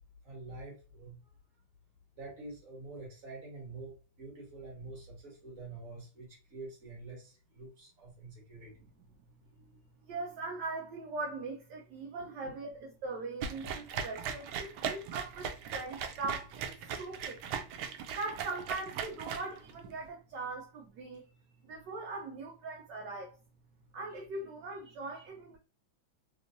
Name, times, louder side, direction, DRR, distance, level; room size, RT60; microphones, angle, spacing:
voice 1, 0.2-1.2 2.2-8.7 12.2-12.5 24.9-25.0, right 3 dB, 45° right, 1.9 m, -47 dB
voice 2, 10.1-21.2 21.6-23.4 23.9-25.6, right 3 dB, 70° right, 1.3 m, -41 dB
sound 1, 13.4-19.9, right 7 dB, 85° right, 1.4 m, -38 dB
3.5 x 3.1 x 2.6 m
omnidirectional pair, 2.1 m